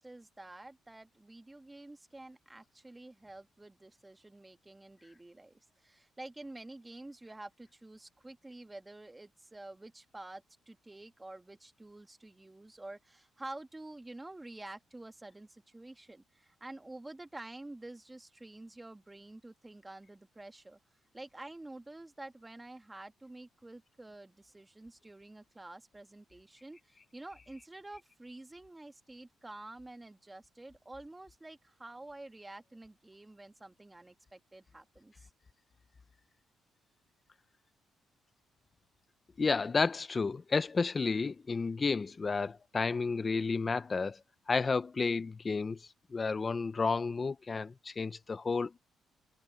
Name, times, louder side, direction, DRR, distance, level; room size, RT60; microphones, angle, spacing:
voice 1, 0.0-20.8 21.1-35.3, right 2 dB, 15° right, 1.9 m, -49 dB
voice 2, 39.4-44.2 44.5-45.8 46.1-48.8, left 4 dB, 30° left, 1.0 m, -31 dB
cardioid pair, 90°, 0 cm